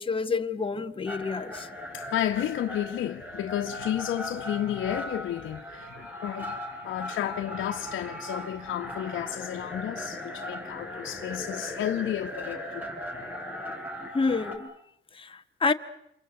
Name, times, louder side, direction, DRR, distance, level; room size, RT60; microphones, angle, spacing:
voice 1, 0.0-1.7 14.1-14.7 15.1-15.7, left 4 dB, 25° left, 1.4 m, -28 dB
sound 1, 1.1-14.6, left 1 dB, 10° right, 6.3 m, -38 dB
voice 2, 1.9-13.0, left 11 dB, 75° left, 1.4 m, -32 dB
28.0 x 23.5 x 8.0 m
cardioid pair, 90°, 20 cm